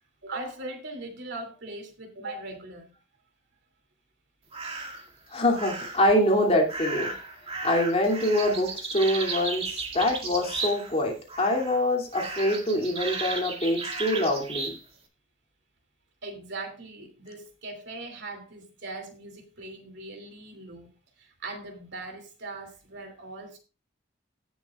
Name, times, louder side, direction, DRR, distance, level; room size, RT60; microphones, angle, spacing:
voice 1, 0.2-2.9 8.4-8.5 16.2-20.9 21.2-23.6, right 2 dB, 65° right, 4 dB, 2.8 m, -40 dB
sound 1, 4.5-5.1 5.5-6.1 6.7-11.0 11.3-11.8 12.1-14.8, right 3 dB, 30° right, 2.0 m, -34 dB
voice 2, 5.3-7.1 7.6-8.7 8.9-9.6 9.9-14.7, left 1 dB, 30° left, 1 dB, 2.6 m, -24 dB
17.0 x 7.3 x 2.4 m, 0.32 s
head